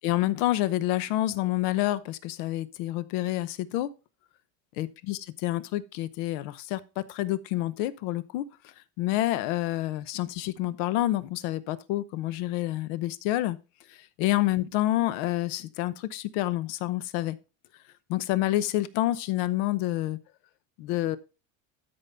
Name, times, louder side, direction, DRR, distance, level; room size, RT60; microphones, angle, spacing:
voice 1, 0.0-3.9 4.8-13.6 13.9-17.4 18.1-20.2 20.8-21.2, left 15 dB, 75° left, 0.9 m, -28 dB
13.0 x 5.4 x 3.4 m
cardioid pair, 165°, 39 cm